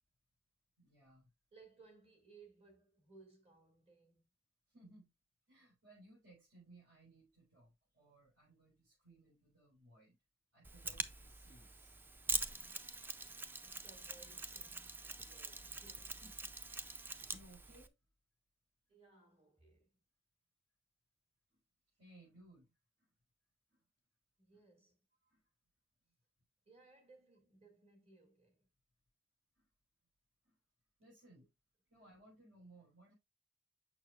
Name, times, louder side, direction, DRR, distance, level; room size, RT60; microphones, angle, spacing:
voice 1, 0.8-1.3 4.7-5.1 5.5-10.1 10.5-12.0 16.2-16.3 16.9-17.9 22.0-22.7 25.3-25.4 30.4-30.5 31.0-31.5 31.9-33.1, right 1 dB, 75° right, 4.3 m, -62 dB
voice 2, 1.5-4.3 12.3-16.3 18.9-20.0 24.4-25.0 26.7-28.7, right 3 dB, 35° right, 2.1 m, -64 dB
Mechanisms, 10.6-17.9, right 3 dB, 10° right, 0.3 m, -44 dB
6.4 x 6.3 x 2.4 m
head